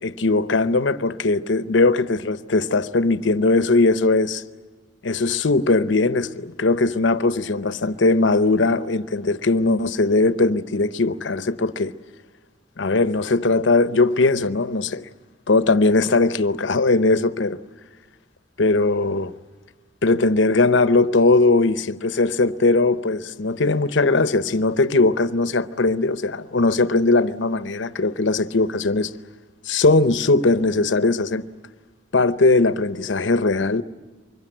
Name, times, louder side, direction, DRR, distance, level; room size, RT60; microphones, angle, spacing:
voice 1, 0.0-4.4 5.0-11.9 12.8-15.1 15.5-17.6 18.6-19.3 20.0-29.1 29.7-31.4 32.1-33.8, left 3 dB, 70° left, 0.8 m, -19 dB
25.0 x 22.0 x 9.1 m
head